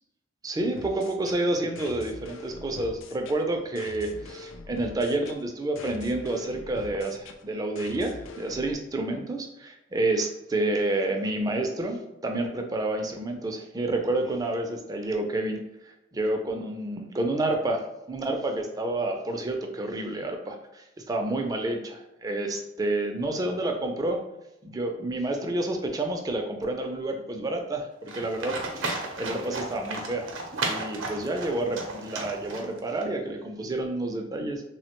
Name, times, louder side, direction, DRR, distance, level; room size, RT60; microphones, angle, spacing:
voice 1, 0.4-15.6 16.1-24.2 24.6-28.9 29.2-30.3 30.7-34.6, right 2 dB, 20° right, 3 dB, 0.3 m, -29 dB
sound 1, 0.7-8.7, left 3 dB, 90° left, 0.3 m, -44 dB
Livestock farm animals working animals, 28.1-33.0, right 3 dB, 75° right, 0.5 m, -34 dB
3.1 x 2.1 x 2.9 m, 0.91 s
head